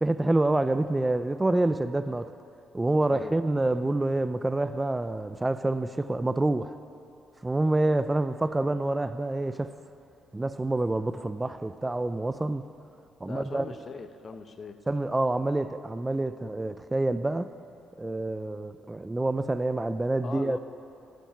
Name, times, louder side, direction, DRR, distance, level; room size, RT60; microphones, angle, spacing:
voice 1, 0.0-2.3 2.7-6.8 7.4-9.7 10.3-12.6 13.2-13.7 14.9-17.5 18.0-20.6, right 2 dB, 15° right, 12 dB, 0.3 m, -27 dB
voice 2, 13.2-14.8 20.2-20.6, left 5 dB, 45° left, 9 dB, 0.7 m, -40 dB
10.5 x 7.0 x 9.1 m, 2.7 s
cardioid pair, 90°, 0 cm